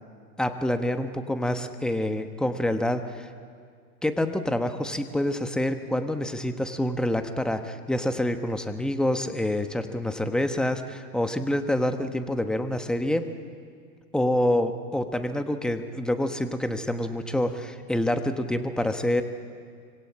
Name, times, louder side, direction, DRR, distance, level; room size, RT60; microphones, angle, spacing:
voice 1, 0.4-3.3 4.0-13.3 14.1-19.2, left 1 dB, ahead, 8 dB, 1.1 m, -27 dB
25.0 x 25.0 x 8.6 m, 2.1 s
hypercardioid pair, 120°, 49 cm